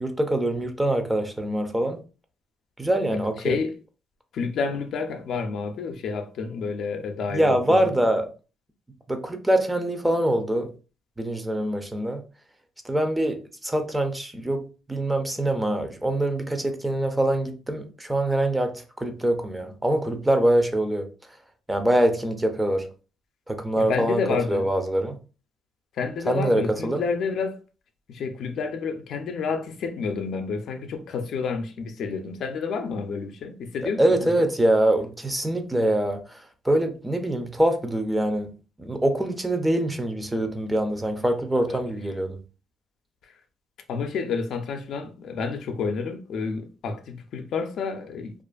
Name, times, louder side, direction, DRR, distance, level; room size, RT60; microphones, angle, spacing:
voice 1, 0.0-2.0 2.8-3.6 7.3-8.3 9.1-10.7 11.2-12.2 12.8-21.1 21.7-22.9 23.5-24.2 24.5-25.2 26.3-27.0 34.0-38.5 38.8-42.4, right 1 dB, 10° right, 0.5 m, -24 dB
voice 2, 3.4-3.7 4.3-7.9 23.8-24.7 26.0-27.6 28.1-34.5 43.9-48.3, left 5 dB, 70° left, 0.4 m, -29 dB
2.4 x 2.4 x 2.3 m
cardioid pair, 90°, 0 cm